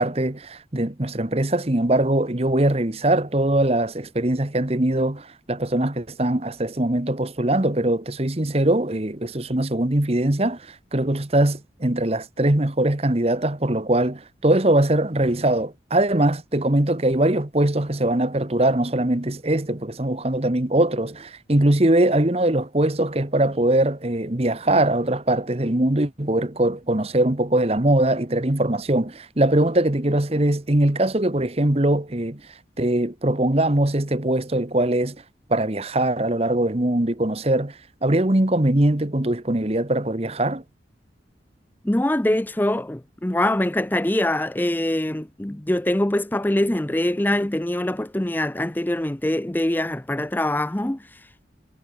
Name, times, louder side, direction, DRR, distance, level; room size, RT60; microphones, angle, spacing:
voice 1, 0.0-32.4 32.8-35.2 35.5-40.6, right 1 dB, 35° right, 1.3 m, -21 dB
voice 2, 41.8-51.4, left 1 dB, 10° left, 0.5 m, -24 dB
head